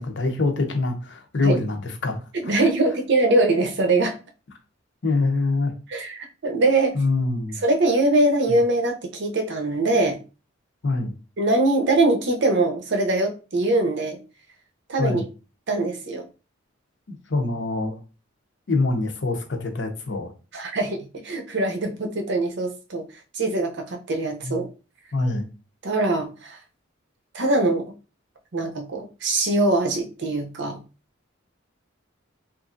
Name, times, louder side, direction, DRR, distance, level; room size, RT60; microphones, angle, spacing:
voice 1, 0.0-2.6 5.0-5.7 6.9-7.6 10.8-11.2 15.0-15.2 17.3-18.0 18.7-20.3 24.4-24.6 25.1-25.5, left 3 dB, 60° left, 5 dB, 0.6 m, -24 dB
voice 2, 2.4-4.2 5.9-6.9 7.6-10.2 11.4-14.2 14.9-15.2 15.7-16.2 20.5-23.1 23.3-24.7 25.8-26.6 27.3-27.9 28.5-30.8, right 2 dB, 60° right, 4 dB, 0.6 m, -22 dB
2.9 x 2.5 x 2.5 m, 0.32 s
head